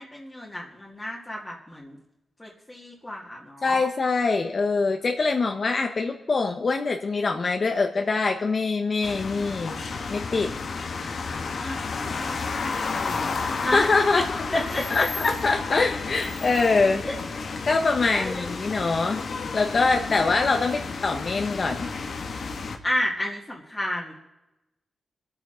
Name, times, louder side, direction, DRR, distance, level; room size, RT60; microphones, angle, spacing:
voice 1, 0.0-2.0 2.4-3.8 11.6-13.3 13.6-13.9 14.1-15.1 17.0-17.1 18.1-18.5 20.1-20.2 22.8-24.2, left 1 dB, 20° left, -3 dB, 2.0 m, -32 dB
voice 2, 3.6-9.7 10.1-10.5 13.6-14.2 14.9-17.0 17.7-19.2 19.5-21.9, left 4 dB, 50° left, 3 dB, 1.0 m, -24 dB
sound 1, 9.0-22.8, left 4 dB, 70° left, 1.3 m, -32 dB
24.0 x 8.8 x 3.9 m, 0.97 s
cardioid pair, 80°, 0 cm